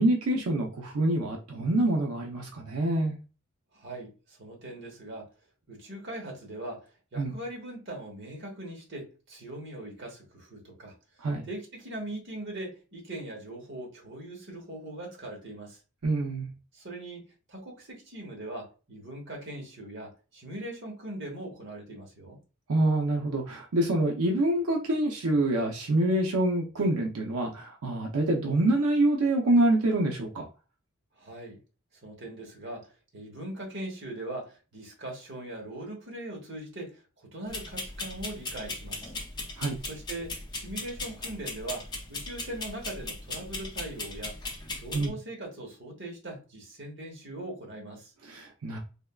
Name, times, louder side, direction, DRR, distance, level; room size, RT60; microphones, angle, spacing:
voice 1, 0.0-3.2 7.2-7.4 11.2-11.5 16.0-16.5 22.7-30.4 39.6-39.8 44.9-45.1 48.2-48.8, right 1 dB, 85° right, 0.6 m, -26 dB
voice 2, 3.7-5.3 5.7-10.9 11.5-15.8 16.7-22.4 31.2-31.6 32.0-39.1 39.9-44.4 44.7-48.1, right 1 dB, 55° right, 1.1 m, -40 dB
sound 1, 37.5-45.1, left 2 dB, 20° left, 0.5 m, -38 dB
3.4 x 2.2 x 2.3 m
head